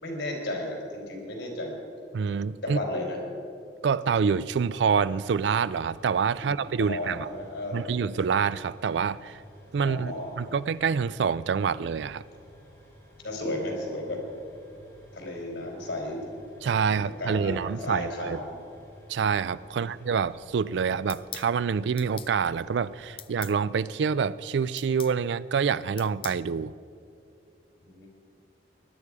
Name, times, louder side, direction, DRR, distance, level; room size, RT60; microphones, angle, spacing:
voice 1, 0.0-1.8 2.6-3.2 6.4-8.0 9.8-10.6 13.2-14.2 15.1-16.2 16.9-18.6 19.7-19.9 27.8-28.1, left 1 dB, 90° left, 0 dB, 3.9 m, -34 dB
voice 2, 2.1-2.8 3.8-7.3 7.7-9.4 9.7-12.2 16.6-18.4 19.1-26.7, right 6 dB, 80° right, 18 dB, 0.4 m, -27 dB
sound 1, 5.0-23.2, equal, 10° left, 4.1 m, -52 dB
sound 2, 21.1-21.5 22.0-22.3 23.2-23.6 24.8-25.2 26.0-26.4, left 11 dB, 30° left, 0.3 m, -41 dB
20.0 x 11.0 x 4.9 m, 2.5 s
head